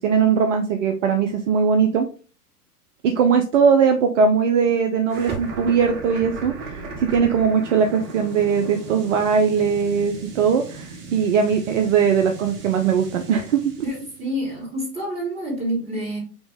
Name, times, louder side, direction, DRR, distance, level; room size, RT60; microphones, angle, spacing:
voice 1, 0.0-2.1 3.0-13.7, right 6 dB, 50° right, 6 dB, 0.7 m, -20 dB
sound 1, 5.1-14.2, right 4 dB, 35° right, 1.3 m, -36 dB
voice 2, 13.8-16.2, equal, 15° right, -3 dB, 2.6 m, -28 dB
5.2 x 3.0 x 3.4 m, 0.36 s
figure-of-eight pair, 100°, 47 cm